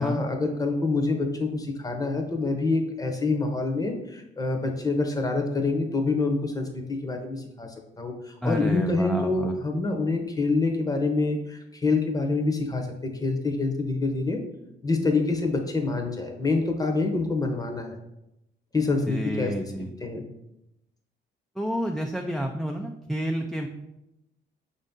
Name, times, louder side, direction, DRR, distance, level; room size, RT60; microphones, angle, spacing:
voice 1, 0.0-14.4 14.8-18.0 18.7-19.5 20.0-20.2, left 3 dB, 20° left, 3 dB, 0.7 m, -26 dB
voice 2, 8.4-9.5 19.1-20.0 21.6-23.7, equal, ahead, 2 dB, 0.3 m, -30 dB
5.1 x 2.7 x 3.6 m, 0.88 s
cardioid pair, 90°, 20 cm